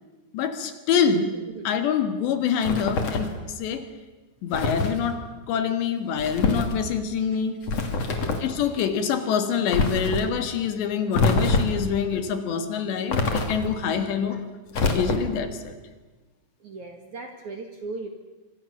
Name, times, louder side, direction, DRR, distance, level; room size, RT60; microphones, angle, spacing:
voice 1, 0.3-1.4 1.7-3.9 4.4-7.7 8.4-14.4 14.8-15.8, left 7 dB, 65° left, 9 dB, 3.6 m, -26 dB
sound 1, 2.6-3.4 4.5-5.0 6.2-6.7 7.6-8.5 9.7-10.2 11.1-11.9 13.1-13.8 14.7-15.4, left 3 dB, 40° left, 3.0 m, -25 dB
voice 2, 8.1-8.4 16.6-18.1, right 3 dB, 50° right, 4 dB, 2.7 m, -38 dB
26.0 x 25.5 x 7.3 m, 1.2 s
omnidirectional pair, 5.8 m